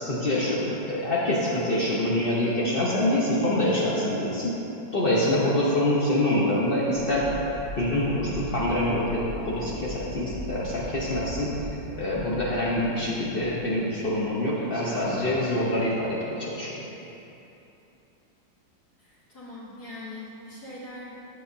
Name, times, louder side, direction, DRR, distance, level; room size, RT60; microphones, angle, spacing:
voice 1, 0.0-4.6 4.9-7.3 7.8-16.8, left 1 dB, 85° left, -7 dB, 0.5 m, -25 dB
sound 1, 6.9-14.2 14.5-15.9, equal, 35° left, 0.8 m, -40 dB
voice 2, 19.0-21.1, left 2 dB, 55° left, -10 dB, 1.7 m, -41 dB
8.5 x 7.3 x 2.7 m, 3.0 s
omnidirectional pair, 2.2 m